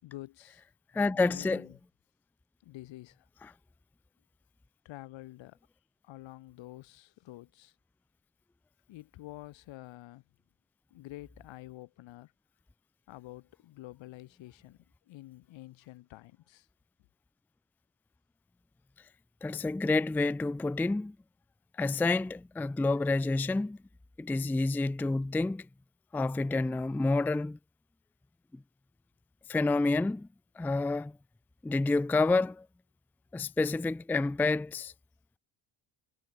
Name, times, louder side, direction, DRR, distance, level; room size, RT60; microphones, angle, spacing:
voice 1, 0.0-0.6 1.0-1.8 2.6-3.3 4.8-5.6 6.0-7.7 8.9-10.2 10.9-12.3 13.1-14.8 15.1-16.7, left 17 dB, 80° left, 6.3 m, -48 dB
voice 2, 0.9-1.7 19.4-21.1 21.8-23.8 24.2-25.7 26.1-27.6 29.5-30.3 30.6-31.1 31.6-32.7 33.3-34.9, left 3 dB, 5° left, 0.4 m, -28 dB
cardioid pair, 120°, 45 cm